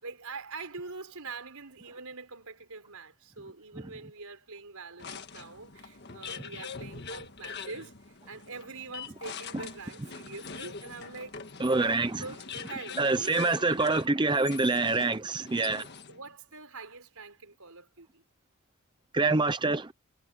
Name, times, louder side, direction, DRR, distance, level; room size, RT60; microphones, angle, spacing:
voice 1, 0.0-11.4 11.6-13.9 15.7-18.2, right 4 dB, 80° right, 4.5 m, -44 dB
sound 1, 5.0-16.3, left 5 dB, 50° left, 1.7 m, -43 dB
voice 2, 11.6-12.2 13.0-15.9 19.1-19.9, right 3 dB, 20° right, 0.6 m, -26 dB
head